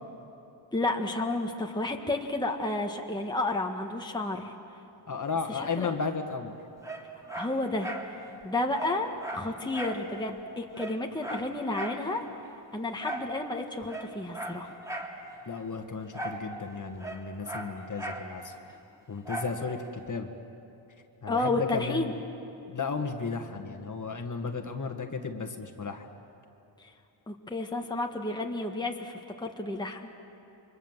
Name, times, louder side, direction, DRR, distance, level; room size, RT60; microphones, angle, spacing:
voice 1, 0.7-4.5 5.5-6.0 7.3-7.9 8.4-12.2 12.7-14.7 21.3-22.1 26.8-26.9 27.3-30.0, left 2 dB, 10° left, 2 dB, 1.6 m, -31 dB
voice 2, 5.1-6.6 15.5-18.5 19.1-20.3 21.2-22.2 22.7-26.1, left 5 dB, 40° left, 5 dB, 1.8 m, -34 dB
Dog, 6.8-8.1 8.4-8.5 8.7-10.0 10.4-10.5 10.7-12.0 13.0-13.3 13.8-15.2 16.1-16.5 16.7-18.3 19.3-19.6 20.1-20.2, right 1 dB, 5° right, 3.0 m, -37 dB
29.5 x 24.0 x 7.5 m, 2.9 s
cardioid pair, 100°, 48 cm